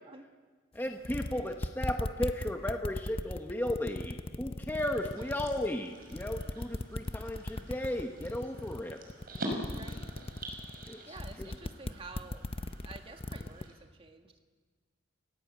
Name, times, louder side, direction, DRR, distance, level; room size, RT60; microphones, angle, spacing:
voice 1, 0.7-9.0 10.9-11.5, left 1 dB, 10° left, 3 dB, 1.1 m, -35 dB
sound 1, 0.8-0.9 1.0-5.7 6.1-13.6, left 2 dB, 30° left, 0.7 m, -37 dB
sound 2, 4.8-13.7, right 1 dB, 50° right, 5.3 m, -45 dB
voice 2, 5.1-5.5 9.7-10.1 11.1-12.4 12.8-14.4, right 3 dB, 30° right, 4 dB, 2.0 m, -49 dB
29.5 x 17.0 x 8.3 m, 1.5 s
head